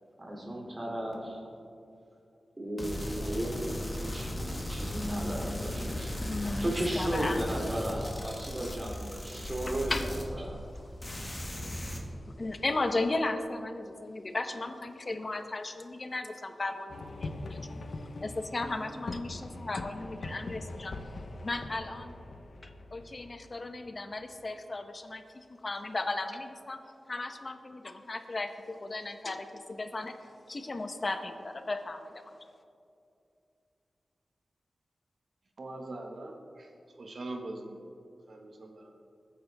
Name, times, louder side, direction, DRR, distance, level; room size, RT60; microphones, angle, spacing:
voice 1, 0.2-1.4 2.6-4.4 4.7-10.8, right 1 dB, 35° right, -1 dB, 3.1 m, -35 dB
sound 1, 2.8-10.7 11.0-12.0, left 1 dB, 20° left, 2.0 m, -37 dB
voice 2, 6.2-7.4 9.9-10.1 12.4-17.8 18.2-20.9 21.4-22.2 22.6-25.2 25.6-26.8 27.1-30.1 30.5-32.2, left 2 dB, 45° left, 7 dB, 1.0 m, -35 dB
sound 2, 16.9-24.4, left 2 dB, 70° left, 1.0 m, -42 dB
voice 3, 35.6-36.7 37.0-37.8 38.3-38.9, right 2 dB, 65° right, 2 dB, 1.7 m, -42 dB
21.0 x 9.5 x 3.6 m, 2.6 s
wide cardioid pair, 85°, 0 cm